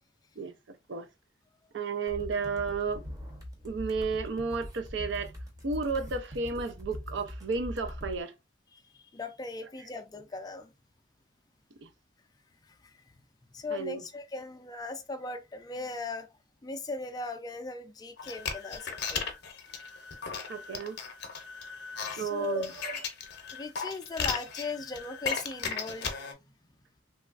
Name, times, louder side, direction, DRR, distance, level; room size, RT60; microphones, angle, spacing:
voice 1, 1.7-3.0 3.6-5.3 5.6-8.3 11.8-11.9 13.7-14.0 20.5-21.0 22.2-23.0, right 4 dB, 75° right, 0.5 m, -32 dB
sound 1, 2.1-8.2, equal, 20° right, 0.8 m, -42 dB
voice 2, 8.7-10.7 12.9-13.0 13.5-16.3 16.6-19.3 22.1-22.7 23.5-26.2, left 3 dB, 20° left, 0.4 m, -38 dB
sound 2, 18.2-26.3, left 6 dB, 60° left, 0.6 m, -36 dB
3.1 x 2.4 x 2.4 m
head